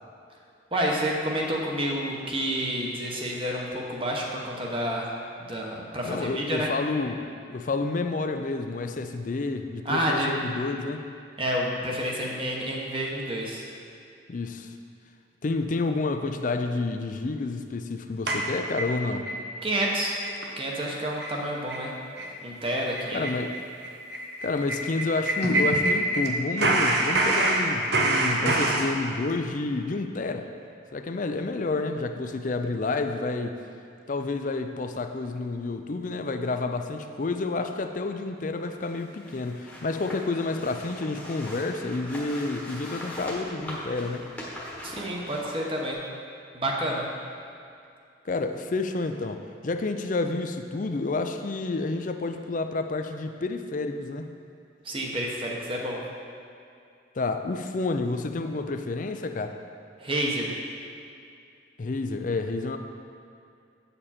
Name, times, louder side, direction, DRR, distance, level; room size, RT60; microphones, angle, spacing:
voice 1, 0.7-5.1 5.4-6.7 9.8-10.3 11.4-13.7 19.6-20.2 20.6-21.9 22.4-23.3 44.8-46.0 46.5-47.1 54.8-56.0 60.0-60.5, right 1 dB, 25° right, -1 dB, 1.0 m, -29 dB
voice 2, 6.1-7.2 7.5-11.0 14.3-14.7 15.4-19.3 23.1-23.6 24.4-30.5 30.9-33.6 34.1-44.3 48.3-54.3 57.1-59.6 61.8-62.8, left 3 dB, 40° left, 7 dB, 0.4 m, -29 dB
sound 1, 18.3-19.4 19.8-19.9 20.2-20.5 20.7-20.8 21.2-21.4 21.7-21.9 22.2-22.3 22.6-26.3 26.6-28.9, right 1 dB, 55° right, 0.8 m, -26 dB
sound 2, 38.7-45.9, equal, 5° left, 1.2 m, -41 dB
8.8 x 6.8 x 4.3 m, 2.4 s
head